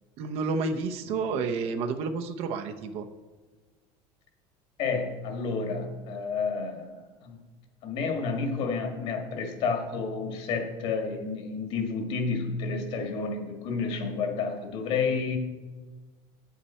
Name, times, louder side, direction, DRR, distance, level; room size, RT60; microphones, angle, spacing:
voice 1, 0.2-3.1, right 4 dB, 50° right, 7 dB, 0.8 m, -30 dB
voice 2, 1.1-1.4 4.8-7.4 7.8-15.4, left 4 dB, 50° left, 4 dB, 1.9 m, -30 dB
9.6 x 8.4 x 4.3 m, 1.3 s
cardioid pair, 170°, 13 cm